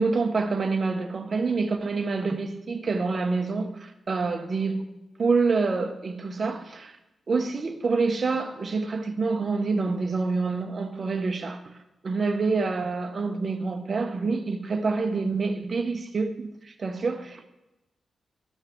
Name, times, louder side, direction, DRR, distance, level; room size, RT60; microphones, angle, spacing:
voice 1, 0.0-4.9 5.2-7.0 7.3-11.6 12.0-17.5, right 4 dB, 45° right, 0.9 m, -27 dB
13.0 x 5.7 x 4.5 m
wide cardioid pair, 105°, 0 cm